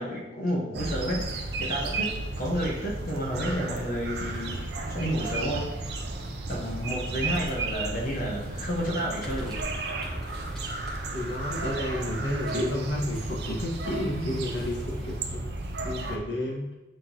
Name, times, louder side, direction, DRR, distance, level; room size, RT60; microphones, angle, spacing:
voice 1, 0.0-5.9 6.5-9.9, equal, 50° left, -3 dB, 1.1 m, -31 dB
sound 1, 0.7-16.2, right 2 dB, 60° right, 0.6 m, -34 dB
sound 2, 4.2-15.2, equal, ahead, 1.2 m, -44 dB
voice 2, 11.1-15.5 15.7-16.6, left 1 dB, 65° left, -3 dB, 1.6 m, -31 dB
9.0 x 3.8 x 2.9 m, 1.0 s
head